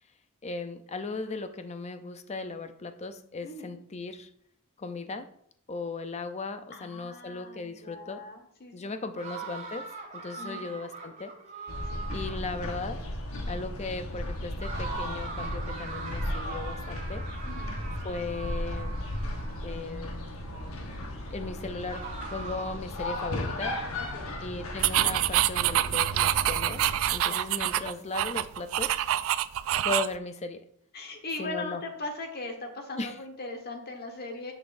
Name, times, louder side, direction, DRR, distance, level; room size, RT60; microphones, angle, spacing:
voice 1, 0.4-4.3 4.8-5.3 5.7-8.2 8.7-11.3 12.1-13.0 13.5-17.3 18.0-18.9 19.6-20.1 21.3-23.8 24.4-29.1 29.8-30.6 31.4-31.8 33.0-33.1, left 3 dB, 30° left, 9 dB, 0.5 m, -37 dB
voice 2, 3.4-3.8 6.7-9.2 10.4-10.7 11.8-12.1 17.4-17.7 24.0-24.4 27.2-27.4 30.9-34.5, left 2 dB, 50° left, 3 dB, 1.3 m, -40 dB
sound 1, 9.2-12.6 14.6-19.9 21.9-22.9, right 4 dB, 40° right, 3.1 m, -41 dB
sound 2, 11.7-27.1, left 1 dB, 85° left, 1.1 m, -35 dB
sound 3, 24.8-30.2, right 12 dB, 65° right, 0.3 m, -26 dB
10.0 x 6.1 x 2.6 m, 0.68 s
head